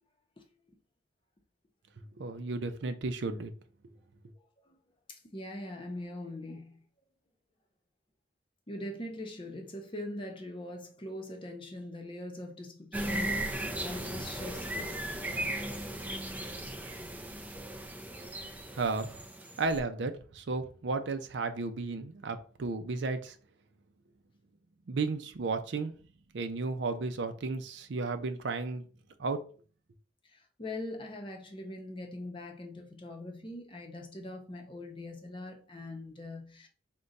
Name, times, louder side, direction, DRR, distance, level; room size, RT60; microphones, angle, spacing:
voice 1, 2.2-3.5 18.7-19.1 19.6-23.4 24.9-26.0 26.3-28.8 29.2-29.5, right 3 dB, 65° right, 0.5 m, -33 dB
voice 2, 5.1-6.8 8.7-15.0 15.3-15.7 30.2-36.7, left 1 dB, 25° left, 0.7 m, -42 dB
sound 1, 12.9-19.8, right 1 dB, 10° right, 0.4 m, -37 dB
3.8 x 2.2 x 4.0 m
head